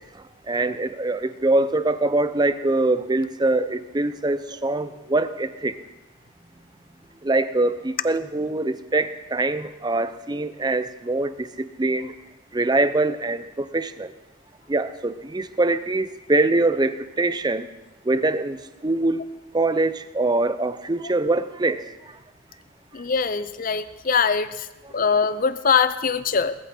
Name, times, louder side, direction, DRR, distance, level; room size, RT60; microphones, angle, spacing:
voice 1, 0.5-5.7 7.2-12.1 12.5-14.1 14.7-17.7 18.1-18.6 18.8-19.2 19.5-21.8, right 2 dB, 20° right, 12 dB, 0.6 m, -23 dB
voice 2, 22.9-24.7 24.9-26.6, left 6 dB, 45° left, 14 dB, 0.6 m, -22 dB
19.5 x 14.5 x 4.4 m, 1.0 s
head